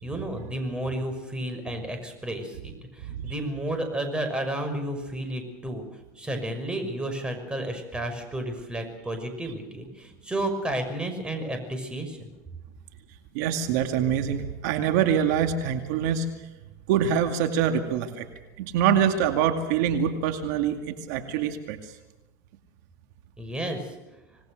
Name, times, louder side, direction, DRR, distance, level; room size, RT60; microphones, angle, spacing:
voice 1, 0.0-5.9 6.2-12.3 23.4-23.9, right 1 dB, 10° right, 5 dB, 5.8 m, -32 dB
voice 2, 13.3-16.3 16.9-18.3 18.6-21.9, right 8 dB, 75° right, 6 dB, 2.3 m, -25 dB
26.5 x 19.5 x 6.5 m, 1.1 s
supercardioid pair, 120°, 9 cm